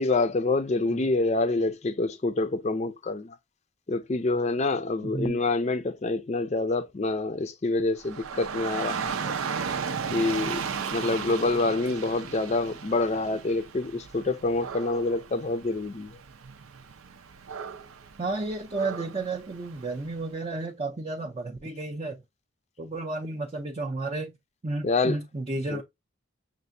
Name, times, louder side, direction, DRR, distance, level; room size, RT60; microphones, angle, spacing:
voice 1, 0.0-3.4 3.9-9.1 10.1-10.6 10.9-16.2 24.8-25.2 25.7-25.8, left 3 dB, 30° left, 0.4 m, -27 dB
voice 2, 5.0-5.4 18.2-22.2 22.8-24.3 24.6-25.8, right 2 dB, 30° right, 0.5 m, -32 dB
Dog / Rain, 8.0-20.2, right 6 dB, 85° right, 0.6 m, -36 dB
6.5 x 2.5 x 2.6 m
head